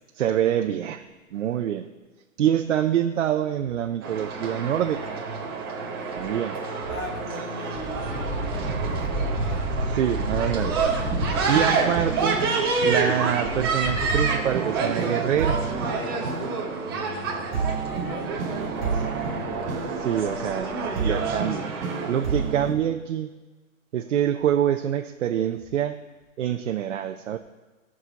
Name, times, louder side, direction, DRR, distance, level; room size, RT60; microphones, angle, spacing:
voice 1, 0.1-1.0 1.3-1.9 2.4-5.0 6.1-6.6 9.9-10.8 11.2-12.4 12.8-15.6 18.9-19.1 20.0-20.7 21.0-21.7 22.1-23.3 23.9-26.0 26.4-27.4, right 10 dB, 60° right, 6 dB, 0.6 m, -25 dB
sound 1, 4.0-22.7, right 3 dB, 15° right, 0.8 m, -28 dB
voice 2, 6.8-9.8 17.8-19.2, left 2 dB, 80° left, -2 dB, 3.1 m, -39 dB
sound 2, 10.0-23.0, left 3 dB, 20° left, 3.9 m, -46 dB
sound 3, 10.9-22.7, right 5 dB, 45° right, 2.6 m, -32 dB
15.0 x 6.2 x 4.0 m, 1.2 s
hypercardioid pair, 175°, 42 cm